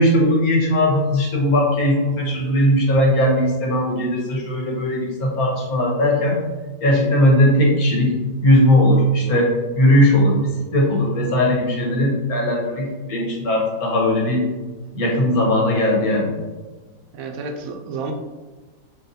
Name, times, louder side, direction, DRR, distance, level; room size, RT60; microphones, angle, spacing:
voice 1, 0.0-6.4 6.8-8.1 8.4-9.5 9.8-14.4 14.9-16.3, left 1 dB, 80° left, -2 dB, 1.5 m, -18 dB
voice 2, 17.1-18.1, right 4 dB, 75° right, 4 dB, 1.0 m, -30 dB
4.2 x 3.9 x 2.6 m, 1.2 s
omnidirectional pair, 1.5 m